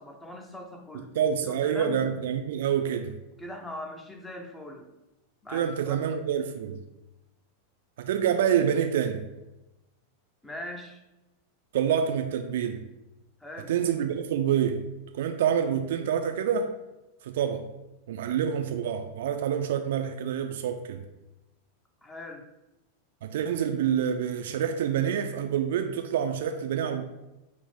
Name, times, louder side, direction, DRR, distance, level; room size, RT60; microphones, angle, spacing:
voice 1, 0.0-1.2 1.4-2.0 3.4-4.9 5.4-6.0 10.4-11.0 13.4-13.7 22.0-22.4, left 1 dB, 10° left, 2 dB, 0.6 m, -40 dB
voice 2, 1.1-3.1 5.5-6.8 8.0-9.3 11.7-12.8 13.7-14.8 15.1-16.7 17.2-17.6 18.1-21.0 23.2-27.0, right 8 dB, 55° right, 6 dB, 0.3 m, -27 dB
4.0 x 2.0 x 4.2 m, 0.97 s
figure-of-eight pair, 90°, 0 cm